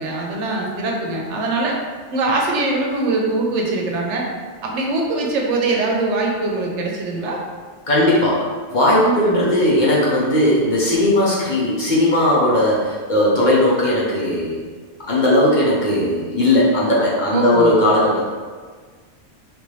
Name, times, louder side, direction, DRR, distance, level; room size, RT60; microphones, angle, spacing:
voice 1, 0.0-1.8 2.1-4.3 4.6-7.4 9.0-9.5 17.3-17.8, right 3 dB, 80° right, -1 dB, 0.9 m, -22 dB
voice 2, 7.9-14.6 15.1-18.3, left 1 dB, 45° left, -6 dB, 0.8 m, -17 dB
3.5 x 2.6 x 3.1 m, 1.5 s
omnidirectional pair, 1.2 m